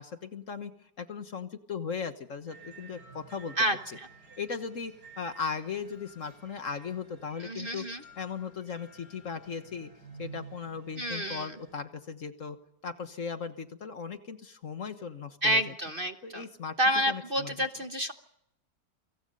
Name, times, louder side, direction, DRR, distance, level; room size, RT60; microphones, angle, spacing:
voice 1, 0.0-3.6 4.4-7.8 8.2-9.9 10.2-12.6 12.8-15.7 16.2-16.7 17.1-17.5, left 6 dB, 50° left, 9 dB, 1.6 m, -37 dB
sound 1, 2.5-11.7, right 4 dB, 65° right, 4.7 m, -52 dB
voice 2, 3.6-4.1 7.4-8.0 11.0-11.5 15.4-16.4 16.8-18.1, right 1 dB, 35° right, 7 dB, 1.2 m, -29 dB
28.0 x 25.0 x 5.4 m, 0.80 s
omnidirectional pair, 1.9 m